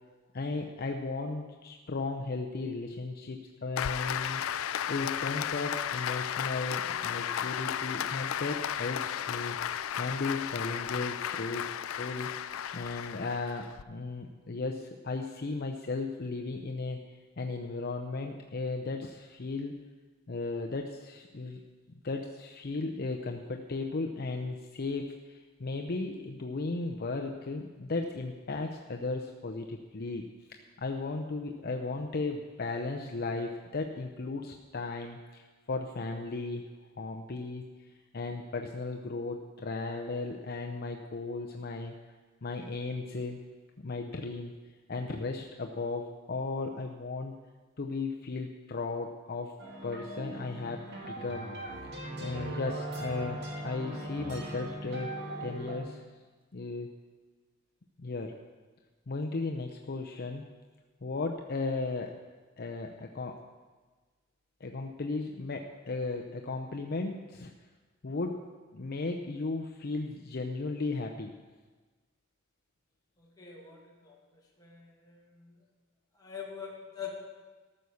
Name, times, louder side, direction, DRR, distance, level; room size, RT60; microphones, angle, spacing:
voice 1, 0.3-9.6 9.9-12.3 12.7-17.0 17.4-19.8 20.3-21.6 21.9-36.7 37.0-37.6 38.1-41.9 42.4-43.4 43.8-44.5 44.9-47.4 47.8-49.5 49.8-51.5 52.2-56.0 56.5-56.9 58.0-58.4 59.1-60.4 61.0-62.2 62.6-63.4 64.6-67.5 68.0-68.5 68.7-71.3, left 3 dB, 50° left, 2 dB, 0.6 m, -35 dB
Applause, 3.8-13.8, left 9 dB, 90° left, 0.4 m, -34 dB
sound 1, 49.6-55.8, right 1 dB, 55° right, 2.1 m, -42 dB
Wind instrument woodwind instrument, 51.9-56.0, right 1 dB, 25° right, 1.3 m, -41 dB
voice 2, 73.2-74.2 74.6-75.5 76.1-77.1, left 7 dB, 20° left, -3 dB, 2.1 m, -44 dB
14.0 x 6.5 x 6.9 m, 1.3 s
head